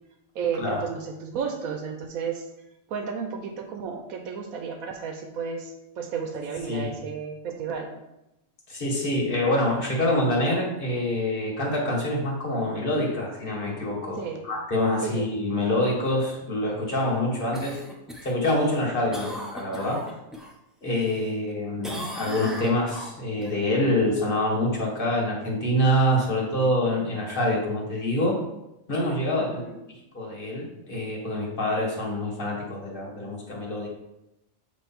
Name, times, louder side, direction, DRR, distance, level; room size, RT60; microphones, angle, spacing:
voice 1, 0.3-2.4 2.9-7.9 14.2-14.4 15.0-15.3 29.4-29.8, right 6 dB, 85° right, 4 dB, 1.2 m, -32 dB
voice 2, 8.7-17.8 18.2-20.1 20.8-28.4 28.9-29.6 30.1-33.9, left 1 dB, 40° left, -3 dB, 1.7 m, -26 dB
Cough, 17.5-20.5 20.9-21.5 21.8-23.5 27.9-28.0, equal, ahead, 0.6 m, -38 dB
7.4 x 3.1 x 4.3 m, 0.91 s
omnidirectional pair, 1.4 m